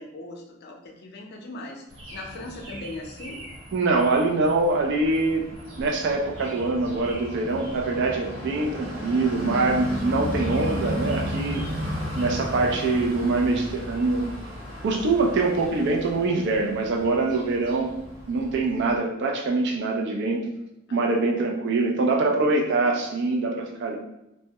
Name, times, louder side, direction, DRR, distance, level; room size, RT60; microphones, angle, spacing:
voice 1, 0.0-1.8 2.1-3.4 20.9-21.5, left 2 dB, 55° left, 0 dB, 0.5 m, -39 dB
sound 1, 1.9-19.0, equal, 85° right, 0.8 m, -35 dB
voice 2, 3.7-5.5 5.8-11.6 12.2-14.2 14.8-17.9 18.3-20.5 20.9-24.0, right 3 dB, 60° right, 1 dB, 0.4 m, -24 dB
2.1 x 2.0 x 2.8 m, 0.86 s
head